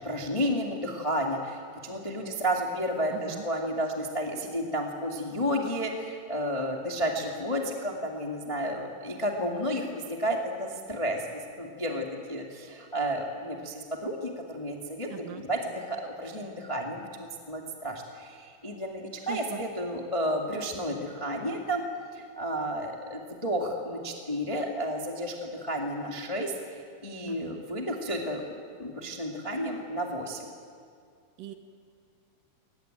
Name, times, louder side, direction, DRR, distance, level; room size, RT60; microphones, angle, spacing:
voice 1, 0.0-21.8 22.1-30.4, equal, 20° left, 1 dB, 0.7 m, -32 dB
voice 2, 3.1-3.5 15.1-15.4 19.3-19.6 27.3-27.6 31.4-31.5, right 11 dB, 70° right, 7 dB, 2.5 m, -40 dB
22.5 x 19.5 x 9.1 m, 2.4 s
omnidirectional pair, 4.7 m